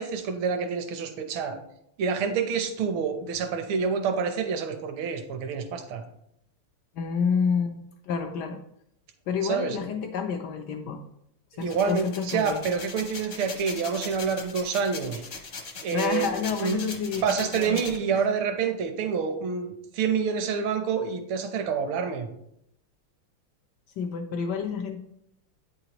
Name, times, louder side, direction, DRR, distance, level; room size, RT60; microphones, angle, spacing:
voice 1, 0.0-1.6 2.0-6.0 9.4-9.8 11.5-15.2 15.8-16.3 16.6-16.9 17.2-22.3, right 6 dB, 75° right, 6 dB, 1.6 m, -27 dB
voice 2, 6.9-8.6 9.3-11.0 11.6-12.7 15.9-18.2 24.0-25.0, left 6 dB, 85° left, 5 dB, 0.9 m, -29 dB
sound 1, 11.6-18.0, left 4 dB, 55° left, 0.7 m, -39 dB
8.8 x 4.9 x 2.9 m, 0.76 s
omnidirectional pair, 2.4 m